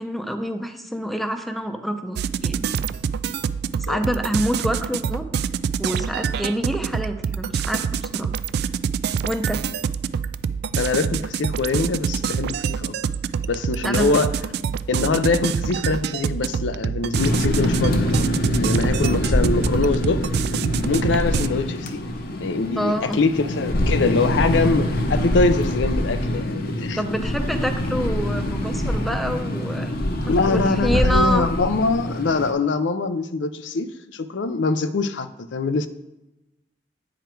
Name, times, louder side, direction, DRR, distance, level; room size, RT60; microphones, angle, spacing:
voice 1, 0.0-2.8 3.9-5.4 5.8-8.3 9.2-9.7 13.8-14.2 22.8-23.2 26.9-29.9 30.2-31.5, equal, ahead, 6 dB, 0.6 m, -27 dB
sound 1, 2.1-21.5, right 7 dB, 60° right, 0.3 m, -26 dB
voice 2, 10.8-12.9 13.5-14.3 14.9-18.3 18.6-20.2 20.8-22.0 22.4-27.0 30.3-35.9, left 3 dB, 85° left, 11 dB, 0.5 m, -23 dB
sound 2, 17.1-32.5, left 1 dB, 55° left, 0.9 m, -24 dB
9.0 x 5.0 x 4.5 m, 0.98 s
head